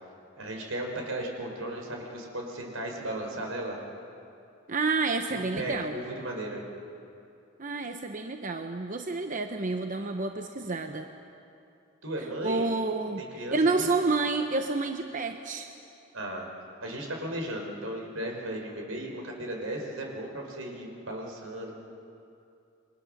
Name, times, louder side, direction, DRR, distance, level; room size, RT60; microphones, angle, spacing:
voice 1, 0.4-3.8 5.3-6.6 12.0-12.6 13.2-13.9 16.1-16.5 16.8-21.7, right 1 dB, 80° right, 1 dB, 4.7 m, -36 dB
voice 2, 4.7-6.0 7.6-11.1 12.4-15.7, right 3 dB, 40° right, 5 dB, 0.9 m, -29 dB
28.5 x 23.0 x 6.6 m, 2.6 s
head